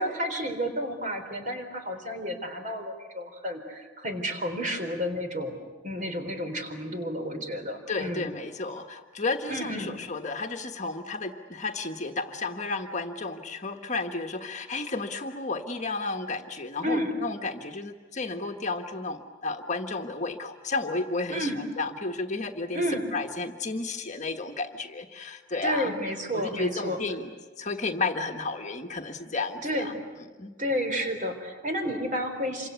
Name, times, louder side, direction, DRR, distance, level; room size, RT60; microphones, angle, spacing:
voice 1, 0.0-8.3 9.5-9.9 16.8-17.1 21.3-21.6 22.7-23.1 25.6-27.0 29.6-30.0 30.6-32.7, equal, 40° right, 6 dB, 4.0 m, -31 dB
voice 2, 7.9-22.8 23.1-25.9 26.3-29.9 30.3-30.5, left 3 dB, 35° left, 5 dB, 1.4 m, -32 dB
27.5 x 25.0 x 8.3 m, 1.4 s
head